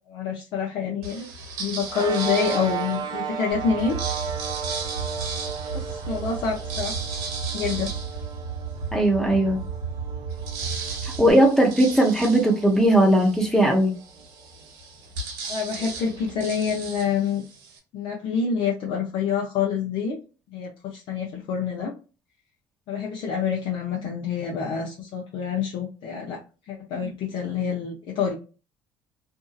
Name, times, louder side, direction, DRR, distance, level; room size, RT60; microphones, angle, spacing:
voice 1, 0.1-1.3 1.6-4.0 5.7-7.0 7.5-7.9 15.4-17.4 17.9-20.2 20.5-21.9 22.9-28.4, left 6 dB, 65° left, -2 dB, 0.7 m, -27 dB
sound 1, 1.0-3.2 3.8-9.0 9.4-9.5 9.8-17.8, right 4 dB, 90° right, 0.9 m, -37 dB
sound 2, 1.9-14.6, right 7 dB, 50° right, 0.6 m, -36 dB
sound 3, 3.5-11.3, right 5 dB, 85° left, 1.2 m, -34 dB
voice 2, 8.9-9.6 11.0-13.9, right 1 dB, 5° left, 1 dB, 0.9 m, -18 dB
2.6 x 2.6 x 2.4 m, 0.33 s
supercardioid pair, 85°, 9 cm